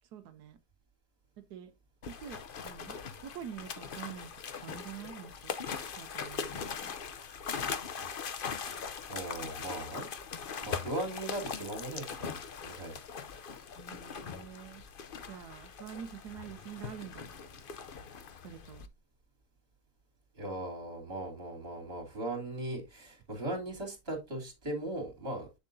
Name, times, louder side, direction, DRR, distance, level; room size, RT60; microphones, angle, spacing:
voice 1, 0.1-0.6 1.5-1.7 2.1-5.5 5.9-6.9 8.0-8.1 13.7-14.8 15.3-17.3 18.4-18.9, right 9 dB, 90° right, 1.3 m, -46 dB
sound 1, 2.0-18.9, left 6 dB, 50° left, 0.7 m, -41 dB
voice 2, 9.1-10.1 10.6-13.0 20.3-25.5, right 1 dB, 40° right, 3.4 m, -38 dB
8.7 x 7.1 x 2.7 m
omnidirectional pair, 1.7 m